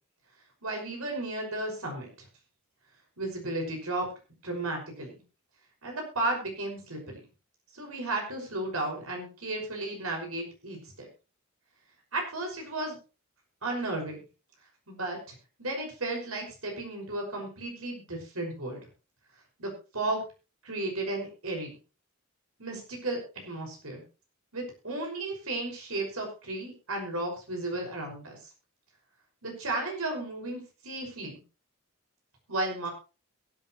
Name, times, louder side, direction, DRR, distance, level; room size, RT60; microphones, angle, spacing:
voice 1, 0.6-2.1 3.2-4.1 4.4-5.1 5.8-7.1 7.7-11.1 12.1-13.0 13.6-14.2 14.9-18.8 19.6-20.2 20.6-21.7 22.6-23.2 23.4-24.0 24.5-28.4 29.4-31.3 32.5-32.9, right 2 dB, 90° right, 1 dB, 5.9 m, -34 dB
22.0 x 9.0 x 3.1 m, 0.32 s
head